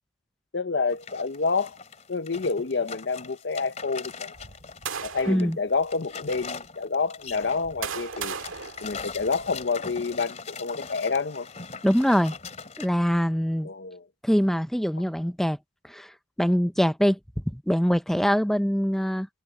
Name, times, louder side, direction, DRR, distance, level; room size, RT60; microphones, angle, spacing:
voice 1, 0.5-1.8 2.1-4.3 5.0-8.4 8.8-11.5 13.6-14.0, left 4 dB, 60° left, 0.7 m, -28 dB
sound 1, 0.9-4.9 5.3-12.9, left 5 dB, 35° left, 2.9 m, -41 dB
sound 2, 4.3-5.5 6.3-6.4 7.3-9.6, right 6 dB, 85° right, 2.0 m, -36 dB
voice 2, 5.3-5.6 11.8-12.3 12.8-13.7 14.2-15.6 15.8-17.2 17.5-19.3, equal, ahead, 0.6 m, -23 dB
head